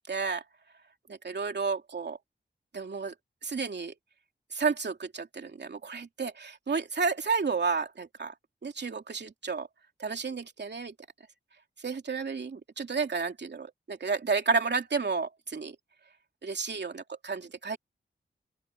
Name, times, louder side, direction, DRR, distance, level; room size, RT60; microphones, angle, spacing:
voice 1, 0.1-0.4 1.1-2.2 2.7-3.1 3.4-3.9 4.5-8.3 8.6-9.7 10.0-10.9 11.8-15.7 16.4-17.8, right 5 dB, 65° right, 2.9 m, -31 dB
open air
cardioid pair, 60°, 19 cm